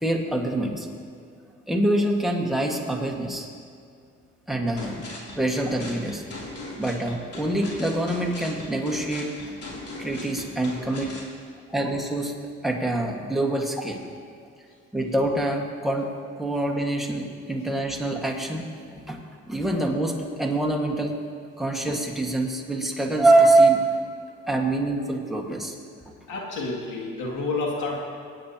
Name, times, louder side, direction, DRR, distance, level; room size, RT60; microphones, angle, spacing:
voice 1, 0.0-0.9 1.7-3.5 4.5-5.0 5.3-6.2 6.8-9.3 10.0-11.1 11.7-12.3 12.6-14.0 14.9-16.1 16.4-18.7 19.1-21.1 21.6-23.9 24.5-25.8, right 2 dB, ahead, 0 dB, 1.7 m, -24 dB
sound 1, 4.8-11.3, left 1 dB, 50° left, 3.2 m, -39 dB
voice 2, 26.3-28.0, left 3 dB, 80° left, -2 dB, 2.5 m, -29 dB
24.5 x 8.9 x 2.9 m, 2.3 s
cardioid pair, 90°, 30 cm